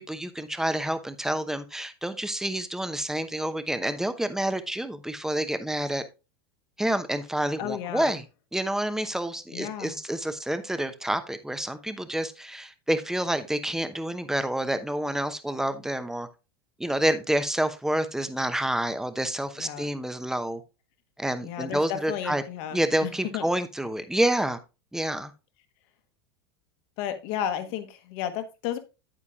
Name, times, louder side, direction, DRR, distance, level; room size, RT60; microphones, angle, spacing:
voice 1, 0.0-6.0 6.8-8.2 8.5-16.3 16.8-20.6 21.2-22.4 22.7-24.6 24.9-25.3, right 1 dB, 5° right, 0.9 m, -28 dB
voice 2, 7.6-8.2 9.5-10.0 19.6-19.9 21.4-23.5 27.0-28.8, left 10 dB, 50° left, 1.4 m, -33 dB
9.7 x 9.2 x 2.4 m
figure-of-eight pair, 85°, 13 cm